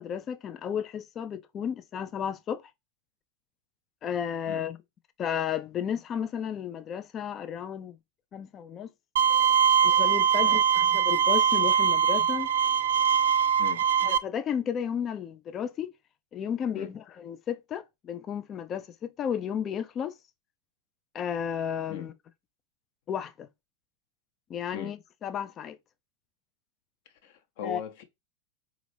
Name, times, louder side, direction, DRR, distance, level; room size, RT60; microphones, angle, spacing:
voice 1, 0.0-2.6 4.0-4.8 5.2-8.0 8.3-8.9 9.8-12.5 14.0-15.9 16.3-20.1 21.1-22.1 23.1-23.5 24.5-25.8 27.6-27.8, left 8 dB, 30° left, 0.3 m, -33 dB
Bowed string instrument, 9.2-14.2, right 8 dB, 65° right, 0.3 m, -22 dB
voice 2, 27.2-28.0, left 9 dB, 50° left, 0.7 m, -39 dB
4.1 x 2.4 x 3.2 m
figure-of-eight pair, 90°, 0 cm